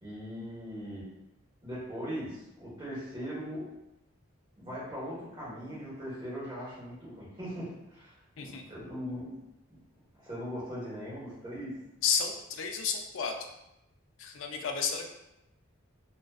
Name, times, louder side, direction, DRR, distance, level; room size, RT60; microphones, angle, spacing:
voice 1, 0.0-1.1 1.6-3.6 4.6-8.1 8.4-9.4 10.2-11.7, equal, 20° right, -9 dB, 0.9 m, -39 dB
voice 2, 12.0-13.3 14.2-15.1, left 6 dB, 70° left, 3 dB, 0.3 m, -31 dB
2.4 x 2.2 x 2.3 m, 0.89 s
head